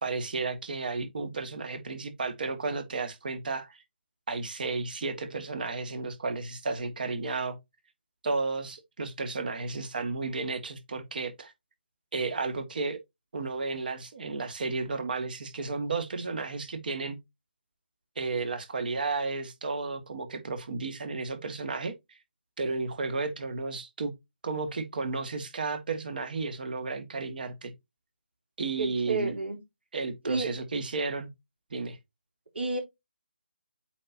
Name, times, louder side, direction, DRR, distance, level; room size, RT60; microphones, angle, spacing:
voice 1, 0.0-3.8 4.3-7.6 8.2-11.5 12.1-13.0 13.3-17.2 18.2-21.9 22.6-24.1 24.4-27.7 28.6-29.4 29.9-31.3 31.7-32.0, right 3 dB, 50° right, 1.9 m, -33 dB
voice 2, 28.8-29.6 30.2-30.5 32.5-32.8, right 3 dB, 70° right, 3.4 m, -30 dB
8.4 x 4.6 x 2.8 m
figure-of-eight pair, 150°, 6 cm